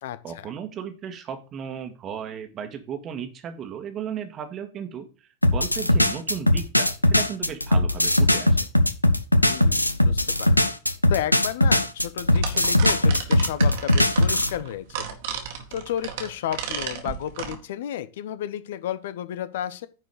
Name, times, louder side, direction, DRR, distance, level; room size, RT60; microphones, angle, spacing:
voice 1, 0.2-8.6, right 8 dB, 30° right, 1.7 m, -35 dB
sound 1, 5.4-14.5, left 1 dB, 85° left, 0.7 m, -20 dB
voice 2, 9.4-10.7 11.1-15.2 15.7-19.9, left 11 dB, 55° left, 0.8 m, -32 dB
sound 2, 12.3-17.6, right 8 dB, 50° right, 1.8 m, -33 dB
9.7 x 4.7 x 4.9 m
figure-of-eight pair, 90°, 0 cm